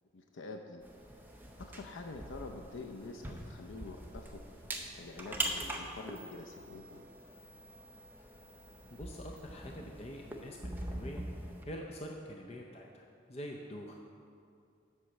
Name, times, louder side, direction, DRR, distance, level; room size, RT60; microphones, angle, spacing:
voice 1, 0.1-0.8 1.2-7.1, left 3 dB, 85° left, 3 dB, 0.5 m, -47 dB
sound 1, 0.8-11.6, right 1 dB, 10° right, 0.6 m, -43 dB
voice 2, 8.9-13.9, equal, 30° left, 1 dB, 0.5 m, -45 dB
7.8 x 5.5 x 7.1 m, 2.4 s
head